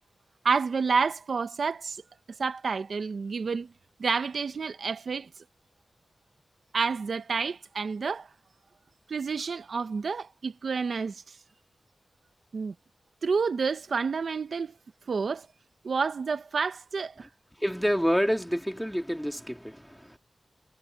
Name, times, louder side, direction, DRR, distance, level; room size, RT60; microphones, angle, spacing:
voice 1, 0.4-2.0 2.4-3.7 4.0-5.3 6.7-8.3 9.1-11.4 12.5-12.7 13.2-14.7 15.1-15.5 15.8-17.3, right 5 dB, 80° right, 1.0 m, -29 dB
voice 2, 17.6-20.2, equal, ahead, 3.3 m, -28 dB
wide cardioid pair, 65°, 0 cm